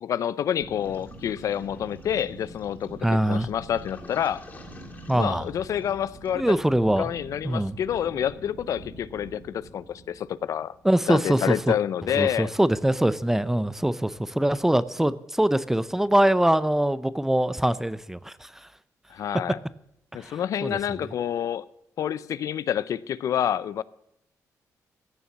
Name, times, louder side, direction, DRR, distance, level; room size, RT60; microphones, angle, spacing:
voice 1, 0.0-4.4 5.1-6.6 7.0-10.7 11.1-12.5 19.1-19.6 20.1-21.7 22.0-23.8, left 9 dB, 65° left, 0.5 m, -28 dB
sound 1, 0.6-11.3, right 1 dB, 65° right, 4.7 m, -45 dB
Toilet flush, 0.8-6.5, left 3 dB, 30° left, 3.0 m, -51 dB
voice 2, 3.0-3.5 5.1-5.5 6.3-7.1 7.4-7.8 10.8-11.8 12.2-18.7 20.2-20.8, right 1 dB, 5° right, 0.6 m, -23 dB
15.5 x 7.0 x 7.3 m
cardioid pair, 135°, 6 cm